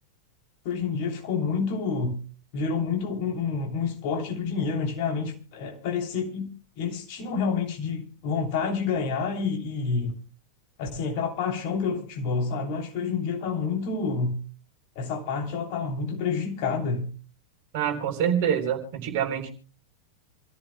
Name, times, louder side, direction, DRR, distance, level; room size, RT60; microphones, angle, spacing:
voice 1, 0.6-2.2 2.5-6.5 6.8-10.1 10.8-14.4 14.9-17.1, left 5 dB, 45° left, 3.1 m, -28 dB
voice 2, 17.7-19.5, right 8 dB, 50° right, 3.6 m, -26 dB
27.5 x 14.5 x 2.2 m
figure-of-eight pair, 90°, 0 cm